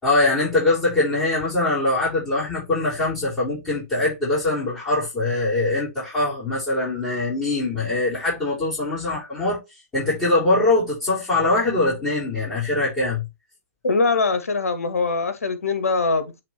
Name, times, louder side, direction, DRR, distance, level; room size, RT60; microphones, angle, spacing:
voice 1, 0.0-9.6 9.9-13.2, left 2 dB, 15° left, 4.1 m, -22 dB
voice 2, 13.8-16.4, left 3 dB, 75° left, 1.4 m, -22 dB
7.5 x 3.8 x 4.3 m
figure-of-eight pair, 120°, 8 cm